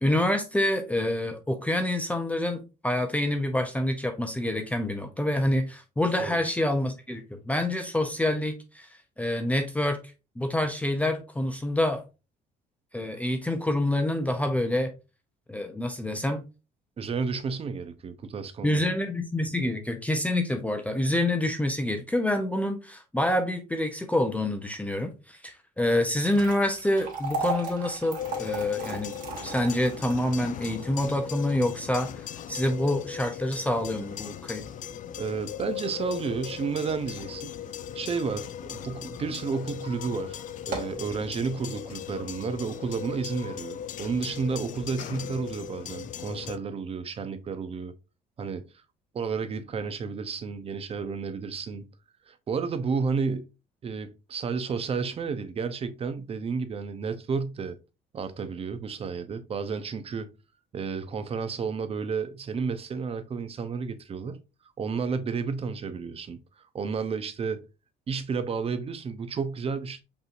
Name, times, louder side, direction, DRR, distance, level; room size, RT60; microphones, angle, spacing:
voice 1, 0.0-8.9 9.2-10.0 10.4-12.0 12.9-14.9 15.5-16.4 18.6-29.2 29.4-34.6, left 1 dB, 10° left, 0.6 m, -27 dB
voice 2, 17.0-18.9 35.2-37.5 37.9-47.9 48.4-48.6 49.1-51.8 52.3-53.5 53.8-57.8 58.1-60.3 60.7-64.4 64.8-66.4 66.7-67.6 68.1-70.0, right 5 dB, 35° right, 0.7 m, -31 dB
sound 1, 25.9-38.2 38.7-38.8 39.5-39.6 40.0-40.1 40.5-41.1, right 3 dB, 55° right, 2.0 m, -38 dB
sound 2, 28.2-46.6, left 10 dB, 50° left, 0.4 m, -38 dB
5.3 x 3.1 x 2.5 m
cardioid pair, 110°, 17 cm